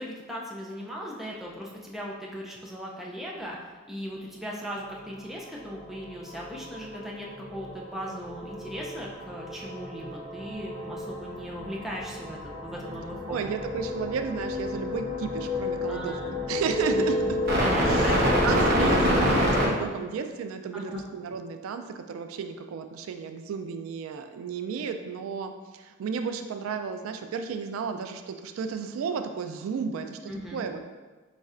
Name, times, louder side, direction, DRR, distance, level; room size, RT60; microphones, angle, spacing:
voice 1, 0.0-3.6 3.9-13.5 15.9-16.4 16.9-17.3 17.6-18.5 18.7-19.0 20.7-21.1 30.3-30.7, equal, ahead, -3 dB, 0.4 m, -38 dB
sound 1, 5.6-6.0 6.2-19.7, equal, 50° right, 0.8 m, -28 dB
voice 2, 13.3-16.2 16.5-17.4 17.8-30.8, right 6 dB, 85° right, 8 dB, 0.3 m, -33 dB
4.1 x 3.2 x 2.4 m, 1.3 s
head